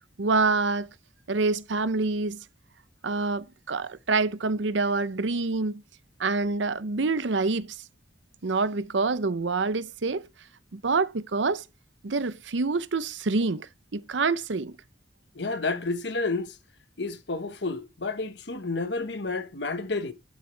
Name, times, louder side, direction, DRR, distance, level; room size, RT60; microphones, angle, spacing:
voice 1, 0.2-0.9 1.3-2.4 3.0-5.8 6.2-7.8 8.4-10.3 10.7-11.6 12.0-14.8, right 3 dB, 75° right, 0.7 m, -26 dB
voice 2, 15.3-16.6 17.0-20.1, left 3 dB, 65° left, 1.3 m, -30 dB
12.0 x 6.6 x 3.3 m
head